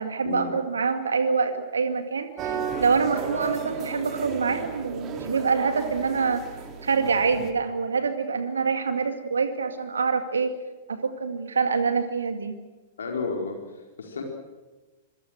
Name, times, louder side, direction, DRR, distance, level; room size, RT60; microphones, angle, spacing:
voice 1, 0.0-6.4 6.8-10.5 10.9-12.5, right 5 dB, 70° right, 8 dB, 2.2 m, -25 dB
sound 1, 2.4-7.5, right 6 dB, 30° right, 3.5 m, -34 dB
voice 2, 13.0-14.2, left 4 dB, 65° left, 2 dB, 4.5 m, -32 dB
26.5 x 23.5 x 6.5 m, 1.2 s
figure-of-eight pair, 105°, 0 cm